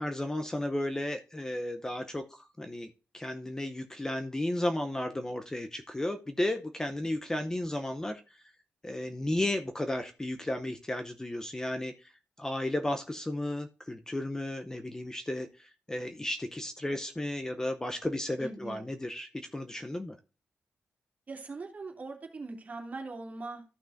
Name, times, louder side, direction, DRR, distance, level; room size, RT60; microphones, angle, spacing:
voice 1, 0.0-8.4 8.8-12.1 12.4-20.2, left 1 dB, 15° left, 0.7 m, -34 dB
voice 2, 18.4-18.9 21.3-23.6, right 3 dB, 35° right, 2.6 m, -41 dB
14.0 x 6.0 x 2.6 m
wide cardioid pair, 130°, 4 cm